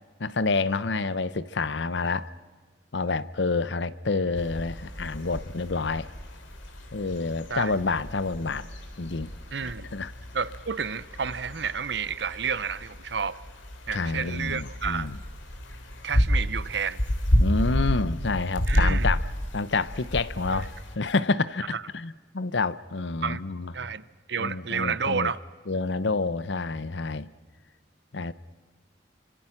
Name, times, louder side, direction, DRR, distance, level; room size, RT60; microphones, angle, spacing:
voice 1, 0.2-2.3 2.9-6.1 6.9-8.7 9.0-9.3 9.9-10.1 13.9-15.2 17.4-19.2 19.5-23.7 24.4-25.3 25.7-27.3 28.1-28.3, left 3 dB, 70° left, 0.8 m, -28 dB
sound 1, 4.3-21.0, equal, 90° left, 3.5 m, -30 dB
voice 2, 9.5-9.9 10.3-13.4 13.9-15.2 16.0-17.0 18.7-19.1 20.5-20.7 21.7-21.8 23.2-23.5 23.7-25.4, right 6 dB, 65° right, 0.9 m, -30 dB
29.5 x 25.0 x 6.0 m
head